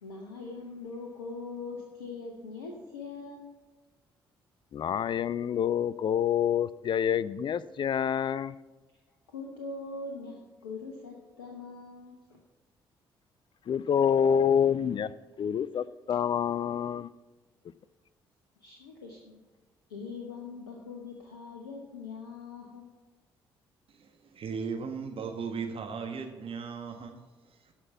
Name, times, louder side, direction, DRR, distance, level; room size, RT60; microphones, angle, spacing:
voice 1, 0.0-3.5 9.3-12.2 16.1-16.2 18.6-19.4 19.9-22.9, left 3 dB, 85° left, 1.0 m, -42 dB
voice 2, 4.7-8.5 13.7-15.1 15.4-17.1, left 8 dB, 40° left, 0.4 m, -27 dB
voice 3, 23.9-27.7, right 5 dB, 50° right, 1.2 m, -37 dB
11.0 x 5.9 x 7.1 m
figure-of-eight pair, 45°, 12 cm